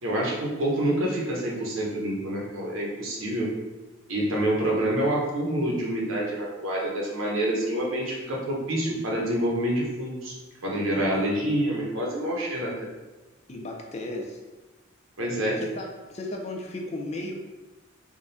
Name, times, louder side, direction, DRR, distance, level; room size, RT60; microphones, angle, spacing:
voice 1, 0.0-3.5 4.1-10.3 10.6-12.9 15.2-15.6, right 1 dB, 80° right, -3 dB, 1.0 m, -27 dB
voice 2, 13.5-14.4 15.6-17.3, left 2 dB, 30° left, 1 dB, 0.5 m, -35 dB
3.7 x 2.4 x 4.0 m, 1.2 s
head